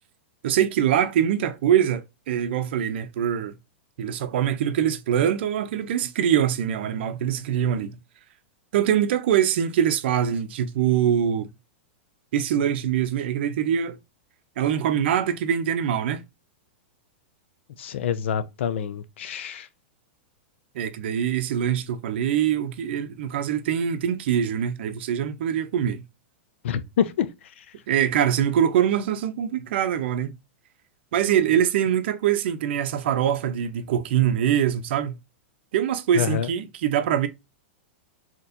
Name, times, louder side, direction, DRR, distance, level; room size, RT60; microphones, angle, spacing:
voice 1, 0.4-3.6 4.0-8.0 8.7-11.5 12.3-14.0 14.6-16.2 20.7-26.0 27.9-30.3 31.1-35.2 35.7-37.3, right 9 dB, 60° right, 0.6 m, -23 dB
voice 2, 17.8-19.7 26.6-27.3 27.6-27.7 36.1-36.5, left 8 dB, 70° left, 0.4 m, -26 dB
4.2 x 2.9 x 2.5 m
supercardioid pair, 160°, 7 cm